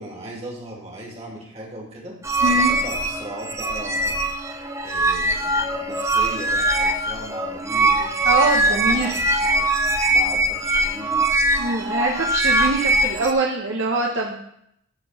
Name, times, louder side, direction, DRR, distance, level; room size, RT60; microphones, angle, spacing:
voice 1, 0.0-2.2 2.5-4.2 4.8-8.2 8.5-9.7 10.1-11.2, right 1 dB, 30° right, -3 dB, 2.6 m, -37 dB
sound 1, 2.2-13.3, right 2 dB, 15° right, 0.6 m, -22 dB
voice 2, 2.4-2.7 8.2-9.1 11.6-14.4, right 2 dB, 60° right, 0 dB, 1.0 m, -23 dB
13.0 x 4.5 x 5.8 m, 0.75 s
head